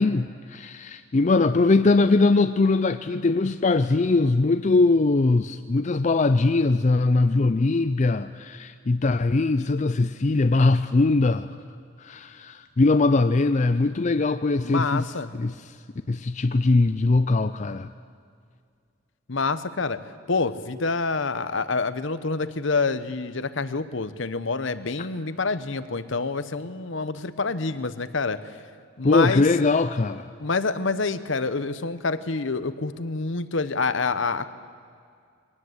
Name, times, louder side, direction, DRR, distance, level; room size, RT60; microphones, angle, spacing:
voice 1, 0.0-11.5 12.0-15.1 15.3-15.8 16.1-17.9 29.0-30.3, left 3 dB, 35° left, 0.4 m, -21 dB
voice 2, 14.6-15.3 19.3-20.0 20.3-28.4 29.0-29.4 30.4-34.5, left 4 dB, 60° left, 0.9 m, -27 dB
22.0 x 18.5 x 8.1 m
head